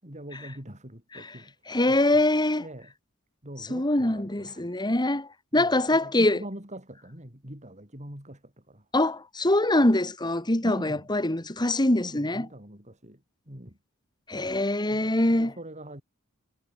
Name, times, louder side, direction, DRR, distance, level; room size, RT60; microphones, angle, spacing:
voice 1, 0.0-1.5 1.9-2.2 2.6-2.9 3.4-4.6 5.5-8.8 10.6-11.1 11.9-13.2 13.5-13.8 14.9-16.0, right 1 dB, 35° right, 7.6 m, -43 dB
voice 2, 1.7-2.6 3.7-6.4 8.9-12.5 14.3-15.5, left 1 dB, 20° left, 2.0 m, -24 dB
head